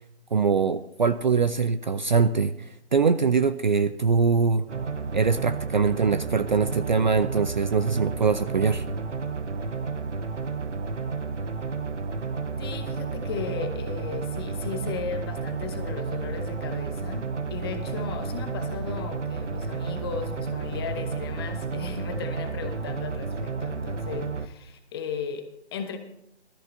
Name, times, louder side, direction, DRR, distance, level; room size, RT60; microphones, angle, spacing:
voice 1, 0.3-2.5 2.9-4.7 5.1-8.8, right 5 dB, 45° right, 0.4 m, -23 dB
sound 1, 4.7-24.5, right 4 dB, 90° right, 1.1 m, -32 dB
voice 2, 12.6-26.0, left 6 dB, 20° left, 1.0 m, -36 dB
19.5 x 13.5 x 2.7 m
figure-of-eight pair, 150°, 35 cm